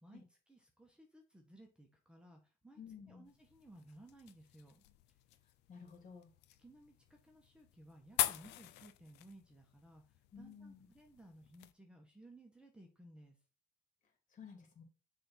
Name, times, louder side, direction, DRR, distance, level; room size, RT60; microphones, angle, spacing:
voice 1, 0.0-2.8 3.1-4.8 6.6-13.4, right 1 dB, 5° right, 2 dB, 1.4 m, -59 dB
voice 2, 2.8-3.2 5.7-6.3 10.3-10.9 14.3-14.8, left 6 dB, 50° left, 2 dB, 3.0 m, -53 dB
sound 1, 3.3-11.7, left 15 dB, 90° left, 0.6 m, -44 dB
6.6 x 3.7 x 5.8 m, 0.34 s
cardioid pair, 110°, 17 cm